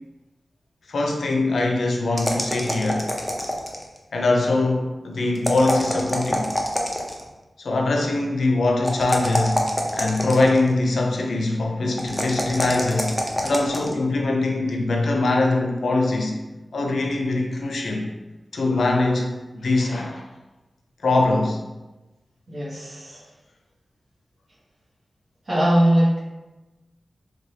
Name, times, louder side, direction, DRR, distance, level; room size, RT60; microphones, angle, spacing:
voice 1, 0.9-3.1 4.1-6.6 7.6-13.2 13.4-16.4 16.7-18.1 18.5-20.3 21.0-21.6, left 2 dB, 85° left, 1 dB, 0.4 m, -22 dB
sound 1, 2.2-4.0 5.4-7.3 8.8-10.7 12.0-13.9, equal, 5° left, 0.4 m, -26 dB
voice 2, 22.5-23.3 25.5-26.2, right 1 dB, 50° right, -6 dB, 0.9 m, -20 dB
2.6 x 2.2 x 3.1 m, 1.1 s
wide cardioid pair, 100°, 0 cm